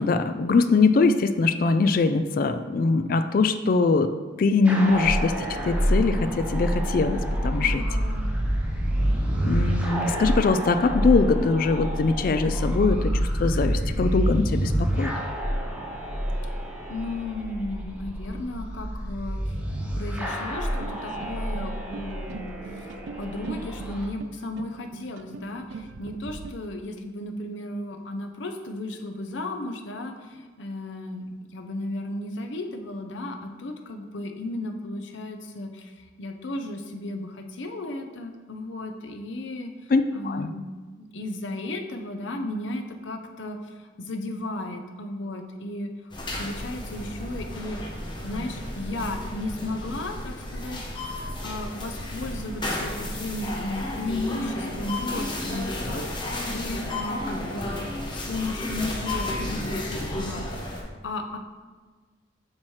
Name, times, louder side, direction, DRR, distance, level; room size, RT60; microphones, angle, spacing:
voice 1, 0.0-4.1 4.4-5.3 5.7-7.8 9.4-13.1 13.4-14.7 15.0-15.1 39.9-40.5, left 4 dB, 45° left, 9 dB, 0.3 m, -22 dB
sound 1, 4.6-24.1, equal, 5° right, 0.8 m, -27 dB
voice 2, 7.6-8.3 16.9-19.5 20.0-31.2 31.5-40.6 41.0-45.9 46.4-47.8 48.2-50.8 51.2-57.8 58.1-61.4, left 2 dB, 75° left, 4 dB, 0.7 m, -34 dB
sound 2, 20.8-26.5, right 4 dB, 75° right, 0.4 m, -41 dB
sound 3, 46.1-60.8, left 1 dB, 25° left, 0.9 m, -32 dB
7.3 x 6.1 x 3.2 m, 1.4 s
head